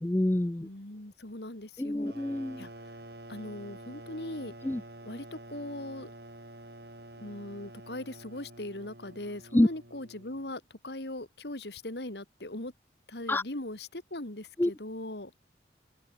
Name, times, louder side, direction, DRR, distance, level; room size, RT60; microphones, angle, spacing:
voice 1, 0.0-0.7 1.8-2.7 4.6-4.8 9.5-9.7 13.3-13.4 14.6-14.7, left 1 dB, 10° left, 0.3 m, -26 dB
voice 2, 0.6-2.1 2.6-2.7 3.3-4.5 5.0-6.1 7.2-12.7 13.1-15.3, left 1 dB, 75° left, 2.9 m, -40 dB
sound 1, 2.0-10.5, right 1 dB, 65° right, 7.8 m, -48 dB
open air
head